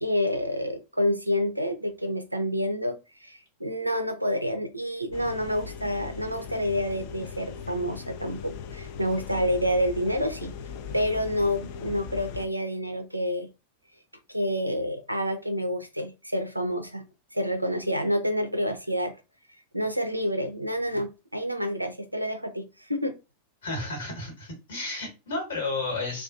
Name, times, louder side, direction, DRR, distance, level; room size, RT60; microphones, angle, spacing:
voice 1, 0.0-10.5 10.9-13.5 14.3-17.0 17.3-19.1 19.7-23.1, equal, 90° right, 7 dB, 0.3 m, -28 dB
sound 1, 5.1-12.5, left 6 dB, 45° left, 0.3 m, -39 dB
voice 2, 23.6-26.2, left 3 dB, 65° left, 0 dB, 1.3 m, -32 dB
2.4 x 2.3 x 2.4 m, 0.27 s
figure-of-eight pair, 90°, 0 cm